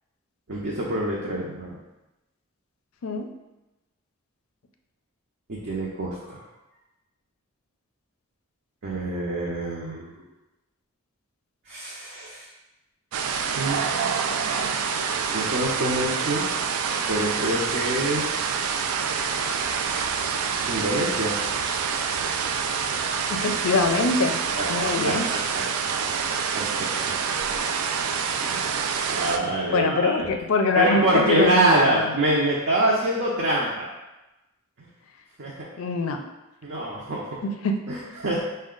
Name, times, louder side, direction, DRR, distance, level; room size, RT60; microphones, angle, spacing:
voice 1, 0.5-1.8 5.5-6.4 8.8-10.3 11.7-12.5 13.5-13.8 15.3-16.4 17.1-18.5 20.7-21.3 24.5-25.6 26.6-27.2 28.4-30.3 30.7-33.9 34.8-34.9 35.4-35.5 36.6-37.4 37.9-38.4, right 1 dB, 55° right, -5 dB, 0.6 m, -25 dB
sound 1, 13.1-29.4, right 6 dB, 90° right, 0.3 m, -27 dB
voice 2, 23.3-24.4 24.7-25.3 29.7-32.1 35.8-36.2 37.4-37.8, left 3 dB, 70° left, 5 dB, 0.4 m, -24 dB
5.1 x 2.2 x 3.7 m, 1.0 s
head